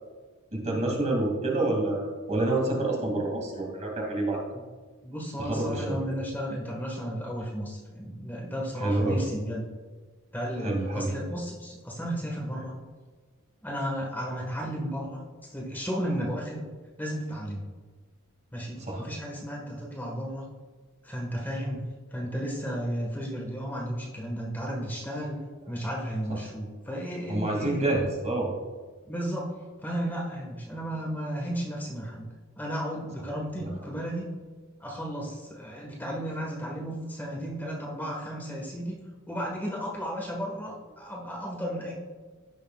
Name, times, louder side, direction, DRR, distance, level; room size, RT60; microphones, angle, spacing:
voice 1, 0.5-4.4 5.4-6.0 8.8-9.2 10.6-11.1 18.8-19.1 26.3-26.4 27.3-28.5 33.6-33.7, right 2 dB, 35° right, -1 dB, 2.3 m, -28 dB
voice 2, 5.0-9.6 10.3-12.7 13.6-15.2 15.5-16.6 17.0-17.7 18.5-20.4 21.0-21.8 22.1-25.4 25.7-27.9 29.1-29.5 29.8-32.3 32.6-34.3 34.8-39.0 39.3-41.9, equal, 10° left, -3 dB, 1.4 m, -33 dB
16.0 x 6.5 x 2.4 m, 1.4 s
head